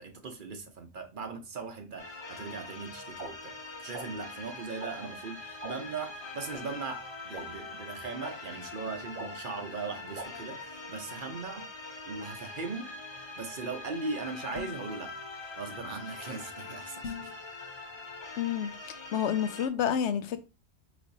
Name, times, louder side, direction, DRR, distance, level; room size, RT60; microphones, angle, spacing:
voice 1, 0.0-11.7 12.0-12.9 13.4-15.2 15.6-17.3, right 4 dB, 50° right, 0.8 m, -39 dB
sound 1, 2.0-19.7, left 3 dB, 30° left, 0.6 m, -43 dB
sound 2, 3.2-3.3 3.9-4.0 4.8-4.9 5.6-5.7 6.5-6.6 7.3-7.4 8.2-8.3 9.2-9.3 10.2-10.3, right 3 dB, 80° right, 1.6 m, -39 dB
sound 3, 14.5-14.9 17.0-17.4, left 5 dB, 65° left, 0.9 m, -40 dB
voice 2, 18.4-20.4, left 9 dB, 90° left, 0.9 m, -30 dB
5.1 x 3.4 x 2.7 m
omnidirectional pair, 1.2 m